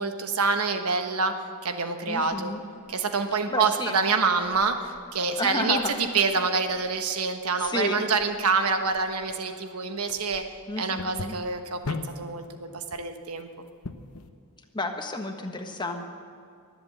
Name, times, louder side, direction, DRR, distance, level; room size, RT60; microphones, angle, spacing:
voice 1, 0.0-1.3 1.6-2.5 2.9-10.4 10.8-13.5, right 4 dB, 80° right, 7 dB, 1.2 m, -26 dB
voice 2, 2.1-2.6 3.5-4.0 5.4-5.9 7.6-8.0 10.7-11.3 14.7-16.0, left 2 dB, 20° left, 4 dB, 1.3 m, -31 dB
sound 1, 2.2-14.3, left 3 dB, 75° left, 0.9 m, -43 dB
22.5 x 7.9 x 7.7 m, 2.3 s
head